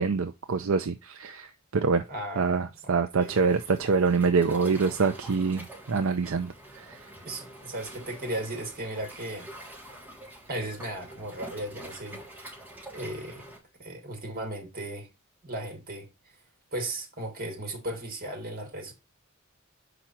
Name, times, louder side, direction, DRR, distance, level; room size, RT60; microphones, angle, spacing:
voice 1, 0.0-2.0 2.4-7.0, right 5 dB, 65° right, 0.5 m, -26 dB
voice 2, 2.1-3.4 7.2-9.5 10.5-12.6 12.9-13.5 13.8-15.1 15.4-16.1 16.7-18.9, right 1 dB, 45° right, 2.4 m, -36 dB
Waves surf, 3.2-13.6, right 1 dB, 10° right, 3.3 m, -46 dB
6.0 x 5.1 x 4.4 m
head